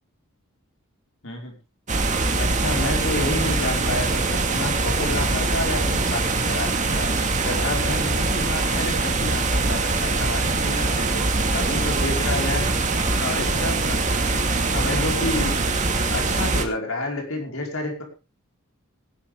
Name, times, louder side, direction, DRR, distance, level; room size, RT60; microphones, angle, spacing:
sound 1, 1.9-16.6, right 3 dB, 35° right, 2.2 m, -23 dB
voice 1, 2.4-7.1 7.4-12.7 13.2-14.5 14.7-15.8 16.1-18.0, left 2 dB, 70° left, 1 dB, 5.3 m, -30 dB
18.0 x 12.0 x 3.7 m, 0.30 s
head